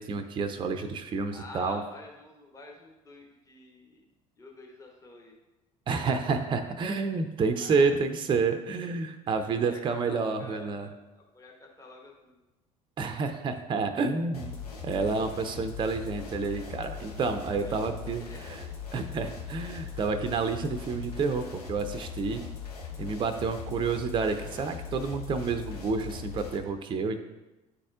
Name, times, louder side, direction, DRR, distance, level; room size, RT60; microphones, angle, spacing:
voice 1, 0.0-1.8 5.9-10.9 13.0-14.6 14.8-18.2 18.9-22.4 23.0-27.2, right 4 dB, 25° right, 8 dB, 0.5 m, -29 dB
voice 2, 1.3-4.1 4.4-5.3 7.5-7.9 9.3-12.4 17.5-17.8 18.2-18.7, left 2 dB, 15° left, 0 dB, 1.0 m, -48 dB
sound 1, 14.3-26.6, left 6 dB, 80° left, 0.8 m, -40 dB
9.7 x 4.1 x 2.4 m, 1.0 s
figure-of-eight pair, 65°, 20 cm